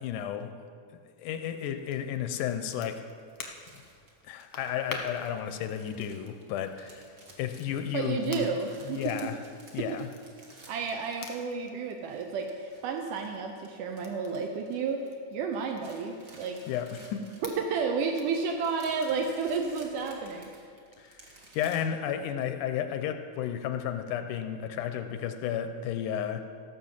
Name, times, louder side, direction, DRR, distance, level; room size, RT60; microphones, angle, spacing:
voice 1, 0.0-0.5 1.2-3.0 4.3-7.1 7.4-8.5 8.9-9.4 9.7-10.1 16.7-17.3 21.0-21.2 21.5-26.5, left 9 dB, 80° left, 9 dB, 2.1 m, -32 dB
Crackle, 1.8-18.4, left 4 dB, 55° left, 1.4 m, -49 dB
sound 1, 3.0-11.7 11.9-15.3 15.5-21.8, right 2 dB, 40° right, 1.2 m, -55 dB
voice 2, 7.9-9.3 9.8-9.9 10.7-16.6 17.4-20.5, right 5 dB, 80° right, 3 dB, 2.3 m, -31 dB
15.0 x 6.2 x 7.3 m, 2.1 s
omnidirectional pair, 3.8 m